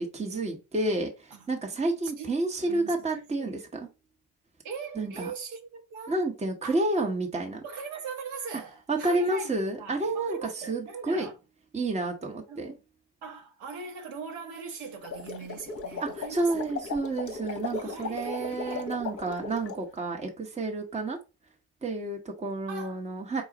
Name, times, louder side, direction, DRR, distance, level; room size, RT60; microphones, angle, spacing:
voice 1, 0.0-3.9 5.0-5.3 6.1-7.6 8.9-11.3 11.7-12.7 16.0-21.2 21.8-23.4, right 2 dB, 15° right, 0.9 m, -30 dB
voice 2, 2.6-3.5 4.6-6.2 6.6-6.7 7.6-11.4 12.5-12.8 13.2-16.6 17.7-18.9 22.7-23.0, right 5 dB, 60° right, 1.2 m, -41 dB
sound 1, 14.9-19.8, left 4 dB, 30° left, 0.9 m, -37 dB
5.1 x 2.4 x 3.8 m
hypercardioid pair, 60°, 48 cm